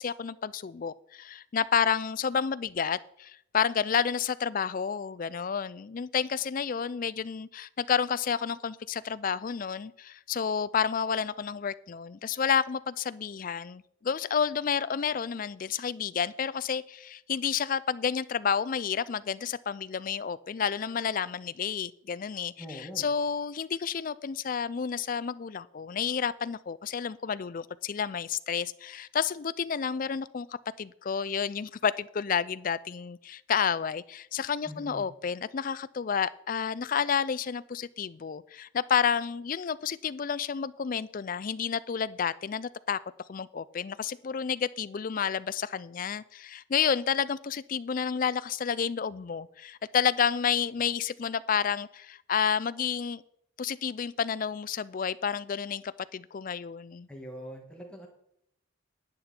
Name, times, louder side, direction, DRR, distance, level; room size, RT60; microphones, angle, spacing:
voice 1, 0.0-43.0 43.3-53.2 53.6-57.1, left 7 dB, 40° left, 0.3 m, -30 dB
voice 2, 22.6-23.1 34.7-35.1 57.1-58.1, equal, 5° left, 2.0 m, -43 dB
10.5 x 10.0 x 4.4 m
head